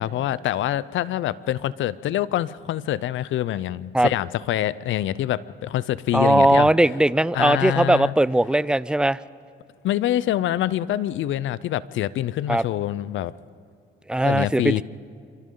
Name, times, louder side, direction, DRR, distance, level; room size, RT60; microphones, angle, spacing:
voice 1, 0.0-6.7 7.3-8.1 9.8-13.3 14.2-14.8, left 12 dB, 75° left, 19 dB, 0.6 m, -25 dB
voice 2, 6.1-9.2 12.5-12.6 14.1-14.8, right 1 dB, 5° right, 19 dB, 0.4 m, -19 dB
27.0 x 24.5 x 3.9 m, 2.4 s
cardioid pair, 90°, 20 cm